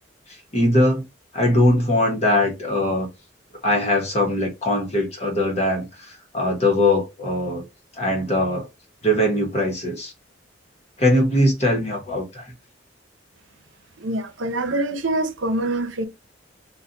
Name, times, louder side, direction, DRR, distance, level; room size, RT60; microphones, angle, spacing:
voice 1, 0.5-1.0 1.3-3.1 3.6-7.6 8.0-8.7 9.0-10.1 11.0-12.5, left 1 dB, 35° left, 1.2 m, -21 dB
voice 2, 14.0-16.0, right 1 dB, 85° right, 0.7 m, -25 dB
3.9 x 2.5 x 2.6 m
head